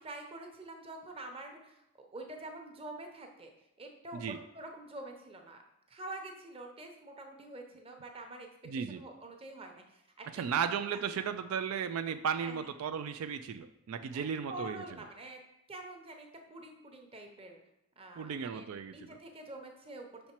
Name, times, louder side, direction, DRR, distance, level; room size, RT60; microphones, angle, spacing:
voice 1, 0.0-3.5 3.8-5.6 5.9-8.5 8.8-11.0 12.4-12.7 14.1-14.2 14.5-15.4 15.7-17.6 18.0-20.3, right 2 dB, 25° right, 3 dB, 0.8 m, -46 dB
voice 2, 8.7-9.0 10.3-14.8 18.2-19.2, right 7 dB, 85° right, 10 dB, 0.4 m, -35 dB
5.7 x 4.3 x 4.4 m, 0.85 s
head